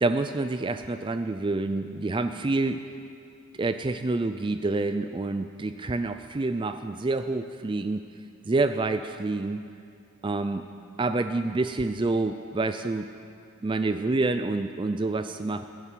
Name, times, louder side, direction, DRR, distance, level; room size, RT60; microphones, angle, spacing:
voice 1, 0.0-2.8 3.6-8.0 8.5-9.6 10.2-10.6 11.0-13.1 13.6-15.6, right 2 dB, 20° right, 9 dB, 0.4 m, -27 dB
17.0 x 10.0 x 7.4 m, 2.4 s
head